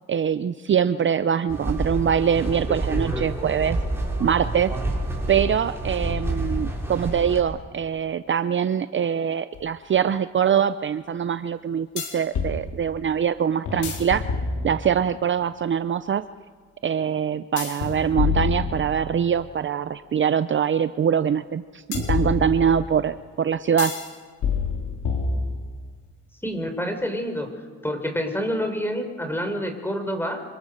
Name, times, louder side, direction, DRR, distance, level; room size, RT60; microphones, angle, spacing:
voice 1, 0.1-3.8 4.2-4.7 5.3-11.9 12.1-14.2 14.6-16.2 16.8-23.9, right 8 dB, 40° right, 12 dB, 0.7 m, -23 dB
sound 1, 1.5-7.4, right 2 dB, 10° right, 6.0 m, -28 dB
sound 2, 9.5-9.6 12.0-12.6 13.7-15.0 17.6-19.3 21.9-22.9 23.8-24.1 24.4-25.8, left 5 dB, 75° left, 4.7 m, -27 dB
voice 2, 26.4-27.5 27.8-30.4, equal, 5° left, 6 dB, 4.8 m, -27 dB
26.0 x 25.0 x 6.6 m, 1.5 s
cardioid pair, 90°, 30 cm